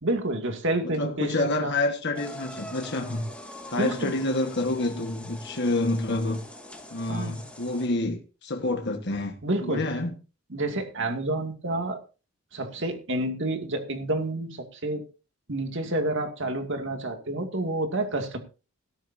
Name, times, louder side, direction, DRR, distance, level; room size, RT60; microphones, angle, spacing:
voice 1, 0.0-1.7 3.7-4.2 7.1-7.4 9.4-9.9 10.5-12.0 12.5-15.0 15.5-18.4, right 2 dB, 55° right, 2.4 m, -29 dB
voice 2, 0.8-3.2 3.7-6.4 6.9-9.3 9.6-10.1, left 2 dB, 50° left, 1.6 m, -28 dB
sound 1, 2.1-7.9, left 1 dB, 5° left, 2.0 m, -43 dB
17.0 x 13.5 x 2.7 m
head